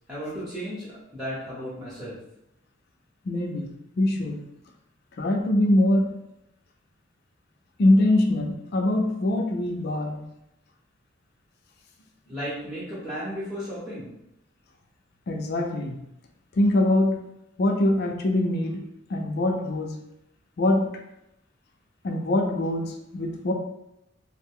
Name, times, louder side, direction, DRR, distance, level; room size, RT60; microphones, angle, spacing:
voice 1, 0.1-2.2 12.3-14.1, equal, 5° right, -10 dB, 0.8 m, -34 dB
voice 2, 3.3-4.5 5.2-6.2 7.8-10.2 15.3-16.0 16.5-17.3 17.6-20.0 20.6-21.0 22.0-23.5, left 1 dB, 50° left, 2 dB, 0.4 m, -23 dB
2.5 x 2.1 x 3.5 m, 0.83 s
head